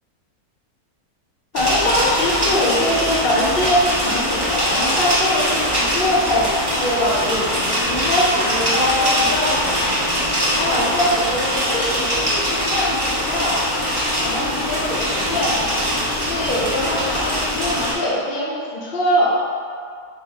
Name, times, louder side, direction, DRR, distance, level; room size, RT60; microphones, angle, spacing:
voice 1, 1.5-6.5 6.8-9.8 10.5-13.7 14.2-15.0 15.3-15.8 16.3-19.4, left 1 dB, 50° left, -6 dB, 0.7 m, -22 dB
sound 1, 1.5-17.9, equal, 25° right, 0.5 m, -22 dB
4.3 x 3.0 x 3.6 m, 2.2 s
omnidirectional pair, 1.6 m